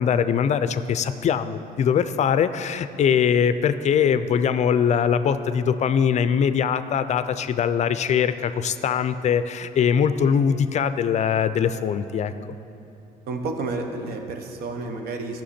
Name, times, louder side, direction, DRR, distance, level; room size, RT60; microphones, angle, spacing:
voice 1, 0.0-12.3, left 7 dB, 45° left, 12 dB, 0.4 m, -22 dB
voice 2, 13.3-15.4, right 3 dB, 65° right, 4 dB, 1.0 m, -30 dB
14.5 x 5.9 x 4.3 m, 2.8 s
cardioid pair, 110°, 17 cm